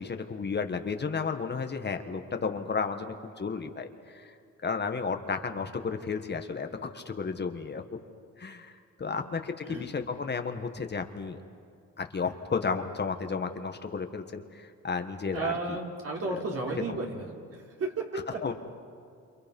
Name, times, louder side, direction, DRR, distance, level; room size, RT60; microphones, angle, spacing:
voice 1, 0.0-4.3 4.6-7.8 8.4-8.7 9.0-11.4 12.0-15.8 16.3-16.4 18.4-18.5, left 5 dB, 35° left, 6 dB, 1.6 m, -33 dB
voice 2, 15.3-18.4, right 3 dB, 50° right, -1 dB, 4.7 m, -34 dB
28.5 x 28.0 x 5.5 m, 2.4 s
cardioid pair, 90°, 30 cm